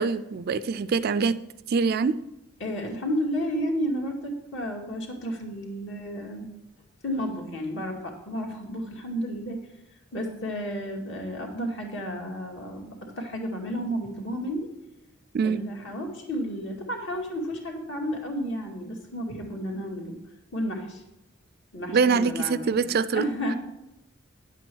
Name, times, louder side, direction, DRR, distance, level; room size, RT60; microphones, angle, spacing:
voice 1, 0.0-1.4 1.7-2.2 15.3-15.6 21.9-23.2, right 5 dB, 50° right, 0.4 m, -24 dB
voice 2, 2.6-6.5 7.0-9.6 10.1-14.7 15.4-20.2 20.5-21.0 21.7-22.8 23.1-23.6, equal, 60° left, 2.2 m, -32 dB
10.5 x 8.2 x 4.6 m
head